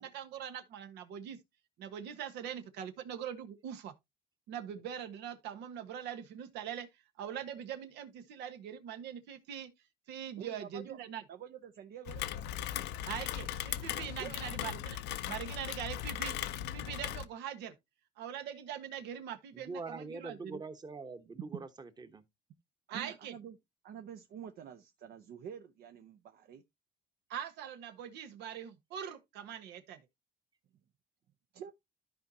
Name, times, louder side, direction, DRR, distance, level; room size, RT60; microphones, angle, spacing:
voice 1, 0.0-1.4 1.8-3.9 4.5-6.9 7.2-9.7 10.1-11.2 13.0-15.0 15.3-16.4 16.7-17.7 18.2-20.6 22.9-23.3 27.3-30.0, right 9 dB, 85° right, 1.3 m, -42 dB
voice 2, 10.4-11.0 11.3-12.3 14.2-14.5 22.9-23.6 23.8-26.6 31.5-31.7, right 8 dB, 70° right, 0.8 m, -48 dB
Rain, 12.1-17.3, left 12 dB, 85° left, 0.7 m, -38 dB
voice 3, 19.5-22.2, right 3 dB, 25° right, 1.1 m, -44 dB
13.5 x 4.6 x 2.7 m
cardioid pair, 110°, 17 cm